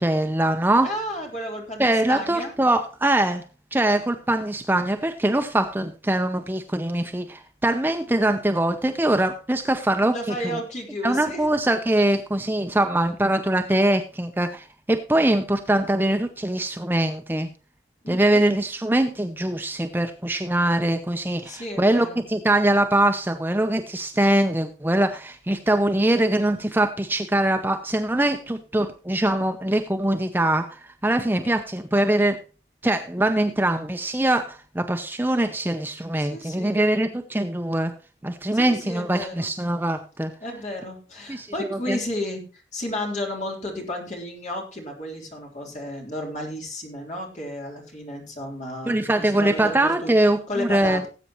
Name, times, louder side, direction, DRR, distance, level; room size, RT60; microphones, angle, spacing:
voice 1, 0.0-0.9 1.8-3.4 3.7-10.6 11.0-17.5 18.1-32.4 32.8-37.9 38.2-40.3 41.3-42.0 48.9-51.0, right 1 dB, 10° right, 7 dB, 0.6 m, -23 dB
voice 2, 0.8-2.5 10.1-11.5 18.0-18.4 21.4-22.2 36.2-36.9 38.5-39.5 40.4-50.1 50.5-51.1, left 1 dB, 40° left, 0 dB, 3.4 m, -33 dB
18.5 x 8.2 x 3.0 m, 0.34 s
head